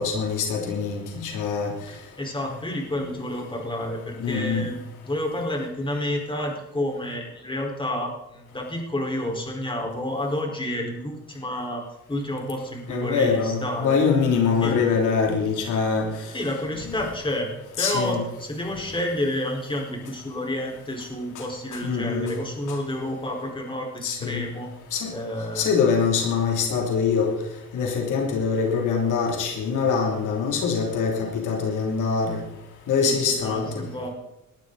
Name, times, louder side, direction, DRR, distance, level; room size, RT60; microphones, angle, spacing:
voice 1, 0.0-1.7 4.2-4.7 12.9-16.3 17.8-18.2 21.8-22.4 24.0-24.5 24.9-25.1 25.5-27.3 27.7-32.4 32.9-33.9, left 5 dB, 85° left, 1 dB, 3.1 m, -24 dB
voice 2, 1.9-11.8 12.1-14.0 14.6-14.8 16.3-17.5 17.8-24.7 25.1-25.7 33.0-34.1, left 1 dB, 15° left, 1 dB, 4.7 m, -30 dB
19.5 x 12.5 x 4.1 m, 0.90 s
cardioid pair, 90°, 30 cm